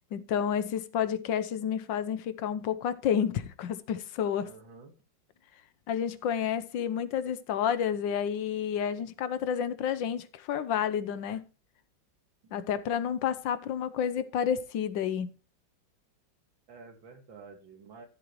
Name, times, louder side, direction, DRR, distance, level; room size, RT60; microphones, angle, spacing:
voice 1, 0.1-4.5 5.9-11.4 12.5-15.3, left 8 dB, 80° left, 1.5 m, -30 dB
voice 2, 4.4-4.9 12.4-12.6 16.7-18.1, right 4 dB, 80° right, 2.7 m, -50 dB
14.0 x 7.8 x 3.1 m
omnidirectional pair, 2.0 m